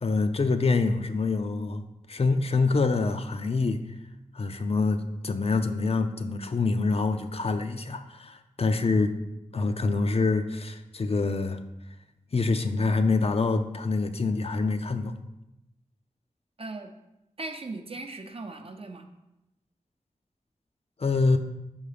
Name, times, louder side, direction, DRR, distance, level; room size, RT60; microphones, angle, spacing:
voice 1, 0.0-1.8 2.1-3.8 4.3-9.2 9.5-11.6 12.3-15.1 21.0-21.4, left 3 dB, 50° left, 8 dB, 0.5 m, -26 dB
voice 2, 16.6-16.9 17.4-19.1, right 3 dB, 45° right, 6 dB, 0.6 m, -38 dB
5.5 x 4.6 x 5.0 m, 0.91 s
wide cardioid pair, 95°, 14 cm